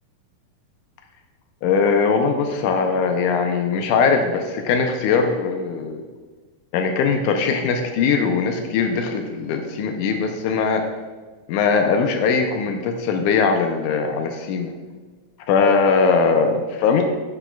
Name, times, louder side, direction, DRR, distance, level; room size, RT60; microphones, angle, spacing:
voice 1, 1.6-6.0 6.7-10.8 11.5-14.7 15.5-17.1, left 5 dB, 90° left, 4 dB, 1.8 m, -20 dB
14.5 x 6.1 x 2.3 m, 1.4 s
omnidirectional pair, 4.2 m